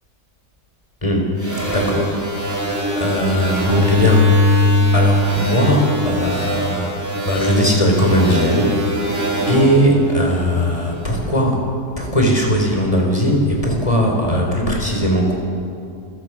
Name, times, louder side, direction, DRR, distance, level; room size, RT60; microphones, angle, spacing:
sound 1, 1.4-10.9, left 1 dB, 10° right, 3.0 m, -20 dB
voice 1, 1.7-2.1 3.0-4.3 4.9-6.9 7.2-9.1 9.5-11.6 12.0-15.3, equal, 20° left, 1 dB, 3.8 m, -18 dB
28.0 x 15.5 x 6.1 m, 2.4 s
omnidirectional pair, 1.8 m